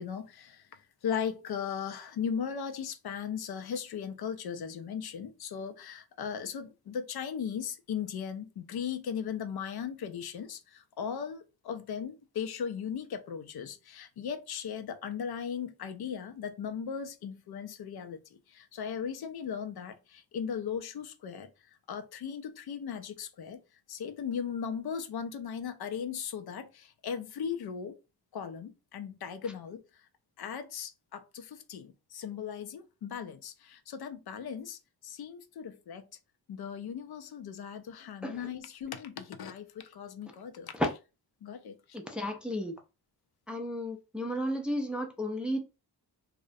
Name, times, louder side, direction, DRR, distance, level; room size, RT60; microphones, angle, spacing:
voice 1, 0.0-18.2 18.5-23.6 23.9-28.0 28.3-30.1 30.4-36.0 36.5-40.8 41.4-42.0, left 7 dB, 65° left, 0.5 m, -38 dB
voice 2, 41.9-42.8 43.5-45.6, equal, 5° right, 0.4 m, -33 dB
2.4 x 2.1 x 2.5 m
wide cardioid pair, 85°, 40 cm